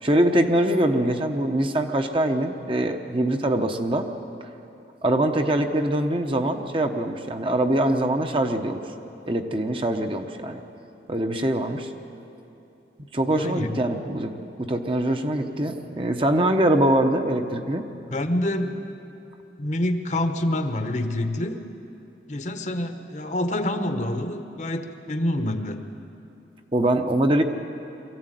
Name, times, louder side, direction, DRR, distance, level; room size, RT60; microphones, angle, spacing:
voice 1, 0.0-4.1 5.0-8.8 9.3-10.6 11.1-11.9 13.1-17.8 26.7-27.4, right 1 dB, 30° right, 5 dB, 1.0 m, -23 dB
voice 2, 13.3-13.8 18.1-18.8 19.6-21.7 22.3-25.8, left 1 dB, 40° left, 7 dB, 1.1 m, -27 dB
23.5 x 14.5 x 9.2 m, 2.8 s
head